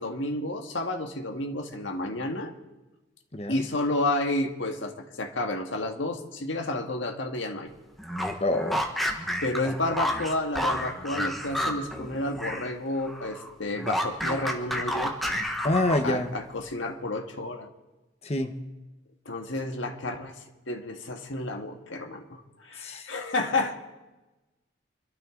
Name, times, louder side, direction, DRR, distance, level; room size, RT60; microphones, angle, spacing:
voice 1, 0.0-2.5 3.5-7.7 9.4-15.2 16.0-17.7 19.3-20.4 20.7-23.7, left 2 dB, 85° left, 5 dB, 1.7 m, -31 dB
sound 1, 8.0-12.7 13.0-16.3, equal, ahead, 1.3 m, -30 dB
voice 2, 8.4-8.8 15.6-16.3 18.2-18.6 22.8-23.1, left 1 dB, 35° left, 7 dB, 1.0 m, -26 dB
26.0 x 12.5 x 3.8 m, 1.1 s
head